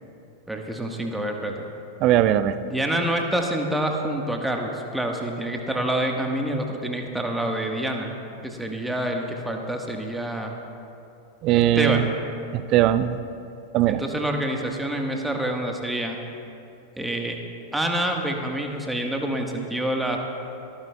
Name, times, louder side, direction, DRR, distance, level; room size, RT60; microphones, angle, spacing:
voice 1, 0.5-1.5 2.6-8.1 8.4-10.5 11.5-12.1 13.9-16.2 17.0-17.4 17.7-20.2, right 1 dB, 5° right, 2 dB, 1.5 m, -27 dB
voice 2, 2.0-2.6 11.4-12.0 12.5-13.2 13.7-14.0, right 12 dB, 40° right, 13 dB, 0.5 m, -19 dB
25.5 x 14.5 x 2.3 m, 2.7 s
figure-of-eight pair, 90°, 0 cm